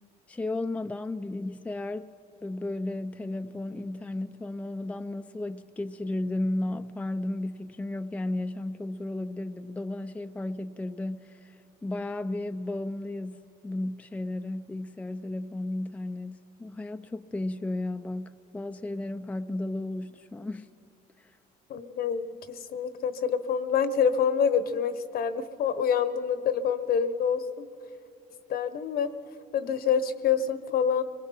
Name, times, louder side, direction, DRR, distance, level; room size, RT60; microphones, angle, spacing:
voice 1, 0.3-2.1 2.4-20.7, left 2 dB, 10° left, 8 dB, 0.5 m, -34 dB
voice 2, 21.7-27.7 28.5-29.1 29.5-31.0, left 7 dB, 65° left, 13 dB, 1.1 m, -27 dB
25.0 x 20.0 x 5.7 m, 2.5 s
cardioid pair, 110°, 17 cm